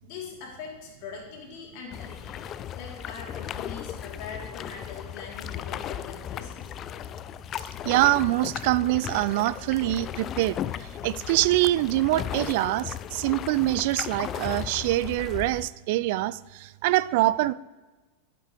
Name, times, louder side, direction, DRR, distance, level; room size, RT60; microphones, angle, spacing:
voice 1, 0.0-6.7, left 5 dB, 45° left, -1 dB, 3.3 m, -42 dB
sound 1, 1.9-15.7, left 10 dB, 30° left, 0.4 m, -36 dB
voice 2, 7.8-17.5, right 17 dB, 50° right, 18 dB, 0.3 m, -25 dB
13.5 x 11.0 x 3.2 m, 1.2 s
figure-of-eight pair, 90°, 0 cm